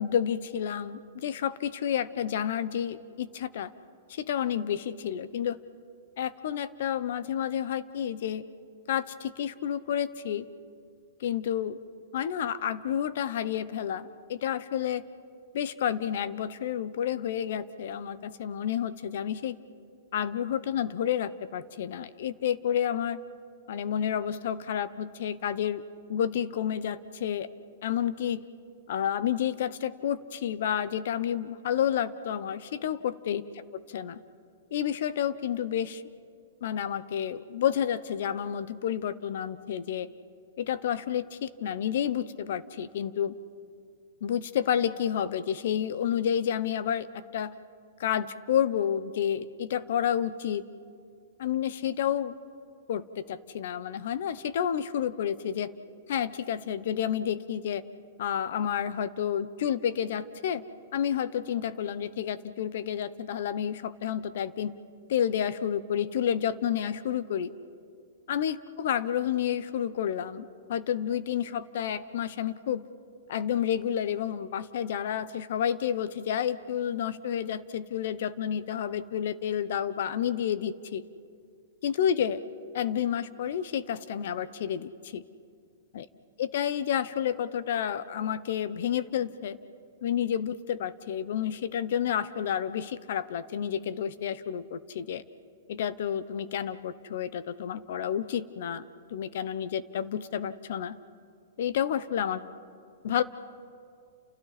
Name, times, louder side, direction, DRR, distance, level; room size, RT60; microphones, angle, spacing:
voice 1, 0.0-3.7 4.1-5.6 6.2-8.4 8.9-10.4 11.2-11.8 12.1-15.0 15.5-19.5 20.1-23.2 23.7-25.8 26.1-27.5 27.8-28.4 28.9-33.4 33.9-34.2 34.7-36.0 36.6-40.1 40.6-43.4 44.2-47.5 48.0-50.6 51.4-52.4 52.9-55.7 56.1-57.8 58.2-60.6 60.9-64.7 65.1-67.5 68.3-72.8 73.3-81.0 81.8-82.4 82.7-85.2 85.9-86.1 86.4-89.6 90.0-95.2 95.7-98.8 99.1-100.9 101.6-102.4 103.0-103.2, left 9 dB, 60° left, 15 dB, 0.9 m, -30 dB
30.0 x 29.0 x 4.2 m, 2.3 s
hypercardioid pair, 160°, 0 cm